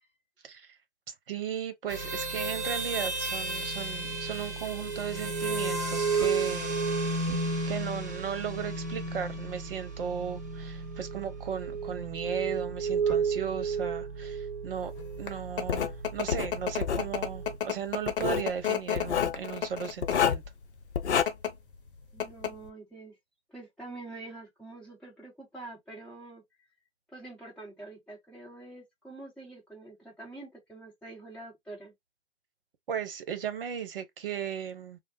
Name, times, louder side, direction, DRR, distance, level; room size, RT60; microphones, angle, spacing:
voice 1, 0.4-0.8 1.3-6.8 7.7-14.9 15.2-20.4 32.9-35.0, right 8 dB, 55° right, 0.9 m, -36 dB
sound 1, 1.9-17.6, right 4 dB, 15° right, 0.4 m, -33 dB
sound 2, 15.0-20.4 21.1-21.5 21.9-22.0 22.2-22.7, left 9 dB, 50° left, 0.8 m, -32 dB
Writing, 15.7-15.9 16.3-17.1 18.1-18.5 19.0-19.4 20.0-20.5 20.9-21.2, left 8 dB, 80° left, 0.6 m, -28 dB
voice 2, 22.1-23.2 23.5-26.4 27.1-31.9, right 2 dB, ahead, 1.0 m, -46 dB
3.3 x 2.0 x 3.0 m
figure-of-eight pair, 135°, 34 cm